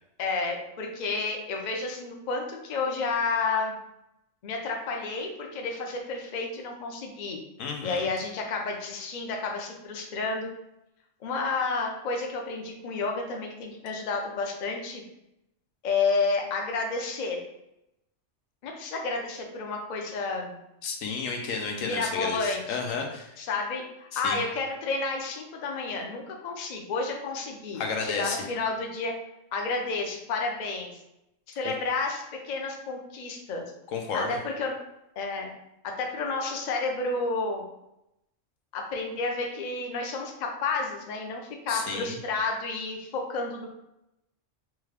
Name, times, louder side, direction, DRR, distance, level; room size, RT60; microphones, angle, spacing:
voice 1, 0.2-3.8 4.4-7.4 7.8-10.5 11.2-15.0 15.8-17.4 18.6-20.6 21.8-22.8 23.4-29.1 29.5-30.9 31.5-33.7 34.1-34.7 35.2-35.5 35.8-37.6 38.7-43.7, left 3 dB, 50° left, 1 dB, 0.5 m, -31 dB
voice 2, 7.6-8.1 20.8-23.3 24.1-24.4 27.8-28.4 31.6-31.7 33.9-34.4 41.7-42.2, left 4 dB, 90° left, 2 dB, 1.1 m, -32 dB
3.5 x 2.3 x 3.3 m, 0.85 s
omnidirectional pair, 1.3 m